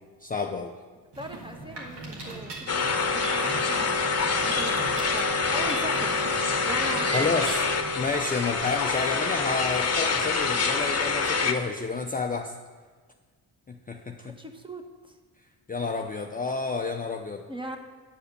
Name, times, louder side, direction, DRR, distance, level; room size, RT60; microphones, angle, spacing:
voice 1, 0.2-0.7 7.1-7.6 8.0-12.6 13.7-14.3 15.7-17.5, left 4 dB, 20° left, 3 dB, 0.5 m, -30 dB
Mechanisms, 1.1-8.1, right 2 dB, 80° right, 1.8 m, -40 dB
voice 2, 1.2-3.9 4.4-6.2 6.6-7.2 14.2-15.2 17.5-17.8, right 1 dB, 10° right, 5 dB, 1.0 m, -39 dB
sound 1, 2.7-11.5, left 4 dB, 35° left, 0.9 m, -26 dB
9.1 x 4.9 x 6.6 m, 1.5 s
cardioid pair, 70°, 41 cm